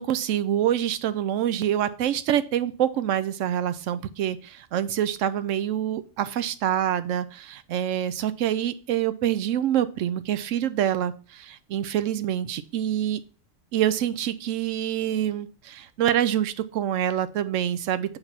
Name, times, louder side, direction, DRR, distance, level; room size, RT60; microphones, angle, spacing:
voice 1, 0.0-13.2 13.7-18.2, right 10 dB, 75° right, 13 dB, 0.9 m, -26 dB
8.2 x 3.4 x 5.7 m, 0.38 s
omnidirectional pair, 1.4 m